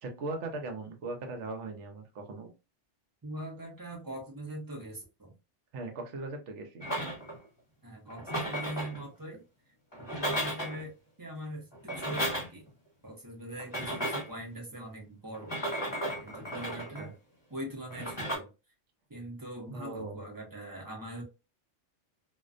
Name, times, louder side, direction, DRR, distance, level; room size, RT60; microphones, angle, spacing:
voice 1, 0.0-2.5 5.7-6.8 17.0-17.1 19.7-20.2, right 3 dB, 75° right, 1.0 m, -39 dB
voice 2, 3.2-5.3 7.8-9.4 10.0-12.7 13.0-15.6 16.2-17.2 17.5-18.5 19.1-21.2, right 1 dB, 20° right, 0.6 m, -42 dB
sound 1, 6.8-7.5 8.1-9.0 9.9-10.8 11.7-12.7 13.6-14.4 15.3-17.1 17.9-18.4, equal, 25° left, 1.1 m, -34 dB
2.5 x 2.1 x 2.4 m
omnidirectional pair, 1.2 m